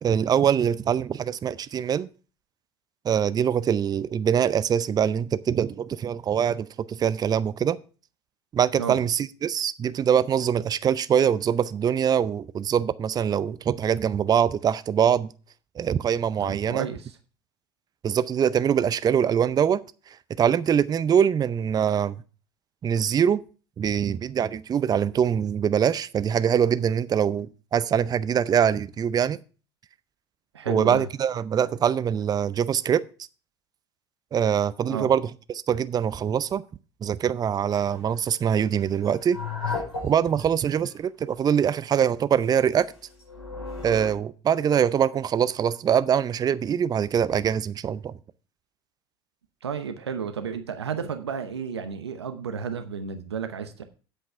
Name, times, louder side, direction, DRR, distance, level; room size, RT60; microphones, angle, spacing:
voice 1, 0.0-2.1 3.0-7.8 8.5-15.3 15.8-16.9 18.0-19.8 20.4-22.2 22.8-23.4 23.8-29.4 30.7-33.0 34.3-36.6 37.0-39.4 39.7-39.8 40.0-42.9 43.8-48.1, right 8 dB, 30° right, 0.5 m, -23 dB
voice 2, 16.4-17.2 30.5-31.1 34.9-35.1 49.6-53.8, right 6 dB, 85° right, 0.9 m, -32 dB
sound 1, 37.7-38.0 39.0-40.4 40.8-41.0 41.4-41.7 42.4-44.1, left 4 dB, 85° left, 4.7 m, -34 dB
8.8 x 7.8 x 4.6 m
figure-of-eight pair, 65°, 13 cm